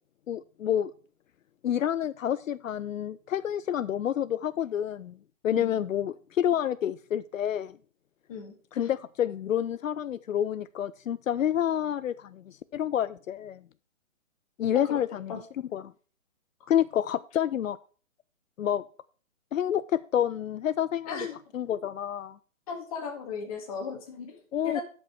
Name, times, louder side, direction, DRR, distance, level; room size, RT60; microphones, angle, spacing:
voice 1, 0.3-0.9 1.6-5.2 5.4-7.8 8.7-13.6 14.6-15.3 15.7-15.8 16.7-17.8 18.6-18.8 19.5-21.2 21.5-22.4 24.5-24.8, left 10 dB, 75° left, 15 dB, 0.5 m, -28 dB
voice 2, 5.5-5.8 8.3-8.9 14.7-15.0 15.3-15.4 21.1-21.4 22.7-24.8, left 5 dB, 25° left, 2 dB, 2.0 m, -37 dB
11.0 x 5.5 x 4.5 m, 0.41 s
hypercardioid pair, 160°, 40 cm